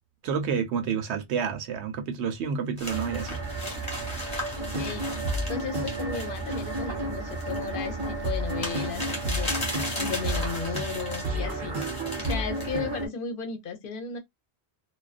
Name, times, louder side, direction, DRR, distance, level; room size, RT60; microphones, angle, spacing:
voice 1, 0.2-3.4, right 6 dB, 85° right, 0.9 m, -29 dB
sound 1, 2.8-11.3 11.8-12.8, left 1 dB, 25° left, 1.0 m, -37 dB
sound 2, 2.9-13.1, right 3 dB, 30° right, 0.6 m, -36 dB
sound 3, 4.6-13.1, right 1 dB, 55° right, 1.0 m, -32 dB
voice 2, 4.7-5.0 5.5-11.8 12.2-14.2, left 6 dB, 60° left, 0.8 m, -35 dB
2.3 x 2.3 x 2.4 m
omnidirectional pair, 1.1 m